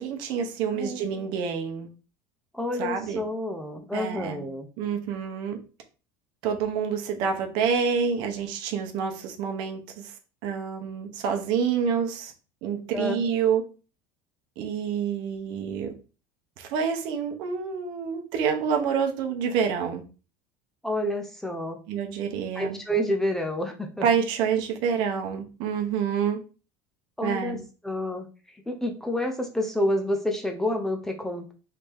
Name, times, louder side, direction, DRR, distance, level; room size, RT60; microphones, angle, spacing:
voice 1, 0.0-1.9 2.8-3.2 3.9-4.5 4.8-5.6 6.4-10.1 10.4-12.3 12.6-13.6 14.6-15.9 16.6-20.0 21.9-22.8 24.0-26.4 27.2-27.6, right 7 dB, 60° right, 4 dB, 0.8 m, -27 dB
voice 2, 2.5-4.7 12.9-13.2 20.8-21.8 22.6-24.0 27.2-27.6 27.8-28.3 28.7-31.5, left 1 dB, 5° left, 4 dB, 0.5 m, -29 dB
3.3 x 2.7 x 3.4 m, 0.34 s
cardioid pair, 140°, 9 cm